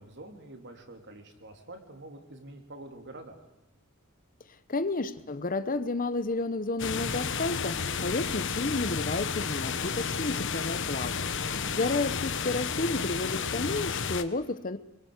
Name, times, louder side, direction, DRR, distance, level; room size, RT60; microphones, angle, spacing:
voice 1, 0.0-3.4 11.5-11.7, right 2 dB, 55° right, 5 dB, 3.5 m, -47 dB
voice 2, 4.7-11.3 11.7-14.8, left 2 dB, 40° left, 13 dB, 1.0 m, -31 dB
sound 1, 6.8-14.2, left 6 dB, 60° left, 1.2 m, -32 dB
26.0 x 23.0 x 8.2 m, 0.97 s
head